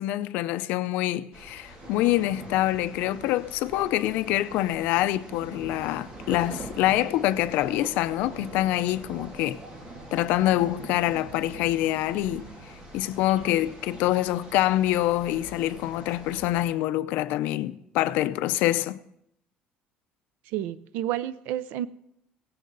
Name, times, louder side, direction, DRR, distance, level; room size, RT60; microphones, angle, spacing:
voice 1, 0.0-9.6 10.1-12.5 12.9-19.0, left 14 dB, 70° left, 0.6 m, -25 dB
sound 1, 1.3-16.7, right 1 dB, 30° right, 2.7 m, -43 dB
voice 2, 20.5-21.9, right 12 dB, 70° right, 0.6 m, -30 dB
17.0 x 14.0 x 4.0 m
cardioid pair, 175°, 3 cm